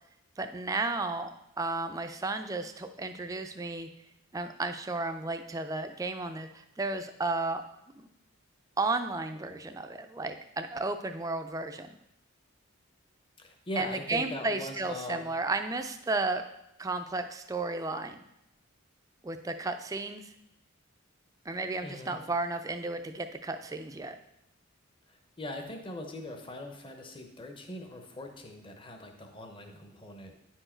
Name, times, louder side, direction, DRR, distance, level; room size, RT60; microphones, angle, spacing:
voice 1, 0.4-1.3 1.6-3.9 4.3-7.6 8.8-11.9 13.8-16.5 16.8-18.2 19.2-20.2 21.5-24.2, right 3 dB, 15° right, 7 dB, 0.3 m, -33 dB
voice 2, 13.4-15.2 21.8-22.2 25.1-30.4, left 1 dB, 25° left, 4 dB, 0.7 m, -41 dB
9.7 x 4.5 x 4.4 m, 0.84 s
head